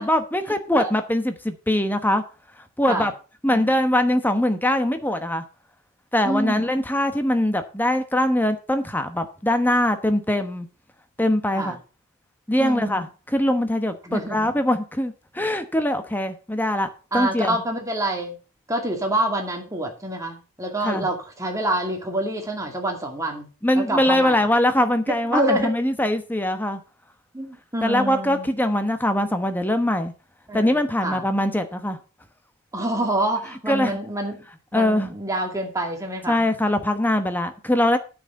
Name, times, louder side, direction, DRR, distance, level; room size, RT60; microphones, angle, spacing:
voice 1, 0.0-2.2 2.8-3.1 3.4-5.4 6.1-10.7 11.2-11.8 12.5-17.6 20.8-21.1 23.6-26.8 27.8-30.1 30.5-32.0 33.7-34.0 34.7-35.1 36.3-38.0, left 1 dB, 10° left, 1.1 m, -22 dB
voice 2, 6.2-6.7 11.6-11.7 12.6-13.1 14.0-14.5 17.1-18.4 18.7-23.5 23.8-24.4 25.1-25.7 27.3-28.5 30.5-30.7 31.0-31.2 32.7-34.4 34.7-36.4, right 1 dB, 15° right, 2.3 m, -27 dB
9.1 x 6.1 x 6.6 m
head